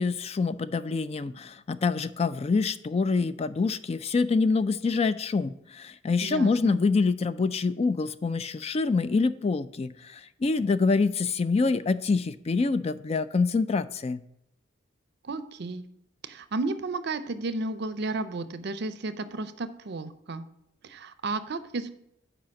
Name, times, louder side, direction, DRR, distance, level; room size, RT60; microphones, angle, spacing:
voice 1, 0.0-14.2, left 4 dB, 30° left, 14 dB, 0.3 m, -26 dB
voice 2, 6.2-6.8 15.2-15.8 16.2-20.4 20.8-21.9, right 3 dB, 55° right, 12 dB, 0.5 m, -33 dB
7.7 x 4.9 x 5.9 m, 0.78 s
head